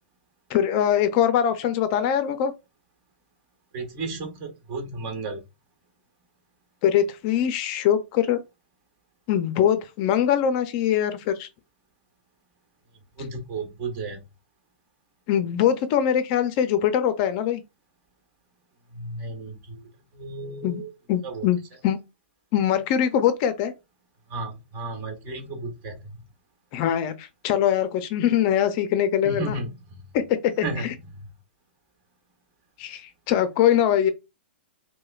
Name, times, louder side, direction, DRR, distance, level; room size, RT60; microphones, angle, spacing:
voice 1, 0.5-2.5 6.8-8.4 9.3-11.5 15.3-17.6 20.6-20.8 21.1-21.6 21.8-22.0 22.5-23.7 26.7-29.6 30.1-30.9 32.8-34.1, left 10 dB, 45° left, 0.5 m, -22 dB
voice 2, 3.7-5.4 13.2-14.2 18.9-19.8 20.1-20.9 21.2-21.4 24.3-25.9 29.2-30.0 30.6-30.9, right 3 dB, 40° right, 1.4 m, -33 dB
4.7 x 2.1 x 2.4 m
hypercardioid pair, 130°, 6 cm